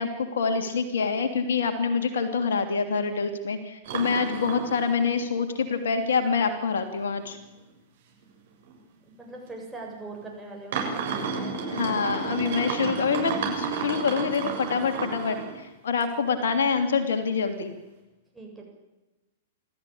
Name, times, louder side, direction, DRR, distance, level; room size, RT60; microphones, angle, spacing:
voice 1, 0.0-7.4 11.7-17.7, left 5 dB, 65° left, 7 dB, 3.1 m, -26 dB
sound 1, 3.8-5.3 5.7-5.8 6.5-6.6 7.1-7.2 7.6-7.7 8.6-8.7 9.5-9.6 10.7-15.6 16.0-16.7 17.1-17.2, right 5 dB, 60° right, 7.2 m, -32 dB
voice 2, 9.1-11.5 18.3-18.7, right 3 dB, 5° right, -1 dB, 7.8 m, -41 dB
27.5 x 14.0 x 8.8 m, 1.1 s
figure-of-eight pair, 105°, 0 cm